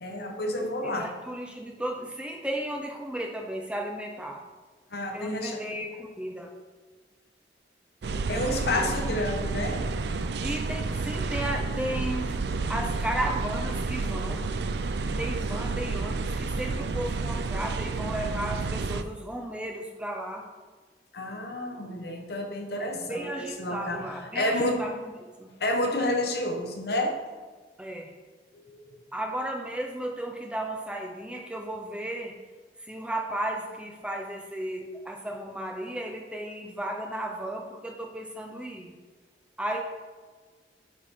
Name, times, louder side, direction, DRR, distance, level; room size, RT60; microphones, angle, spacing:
voice 1, 0.0-1.1 4.9-5.6 8.3-9.8 15.5-15.6 21.1-24.8 25.6-27.2 28.5-29.0, left 1 dB, 60° left, 3 dB, 1.0 m, -30 dB
voice 2, 0.8-4.4 5.1-6.5 8.3-9.1 10.4-12.4 12.7-14.5 15.2-20.4 22.8-25.5 27.8-28.1 29.1-32.4 32.8-39.0 39.6-39.8, right 1 dB, 5° right, 1 dB, 0.6 m, -34 dB
sound 1, 8.0-19.0, right 3 dB, 65° right, 0.4 m, -30 dB
9.6 x 4.3 x 3.6 m, 1.4 s
head